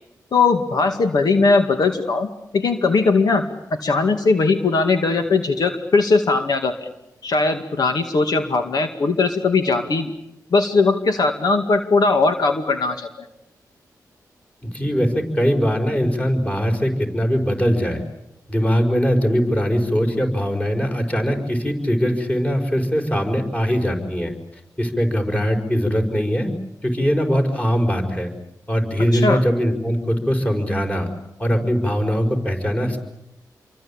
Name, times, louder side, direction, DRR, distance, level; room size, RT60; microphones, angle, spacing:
voice 1, 0.3-3.4 3.7-6.9 7.2-10.1 10.5-13.1 29.1-29.4, left 3 dB, 70° left, 6 dB, 2.2 m, -19 dB
voice 2, 14.6-18.0 18.5-24.3 24.8-26.5 26.8-28.3 28.7-31.1 31.4-33.0, equal, 20° left, 4 dB, 5.6 m, -21 dB
28.5 x 24.0 x 8.8 m, 0.84 s
cardioid pair, 85°, 7 cm